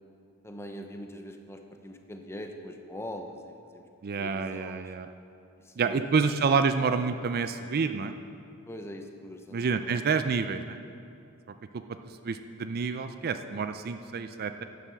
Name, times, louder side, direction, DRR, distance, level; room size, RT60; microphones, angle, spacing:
voice 1, 0.4-4.9 5.6-6.4 8.6-10.1, left 1 dB, 10° left, 5 dB, 0.7 m, -43 dB
voice 2, 4.0-5.1 5.8-8.1 9.5-10.8 11.7-11.8 12.2-14.6, right 5 dB, 45° right, 9 dB, 0.4 m, -28 dB
11.0 x 7.2 x 6.8 m, 2.5 s
head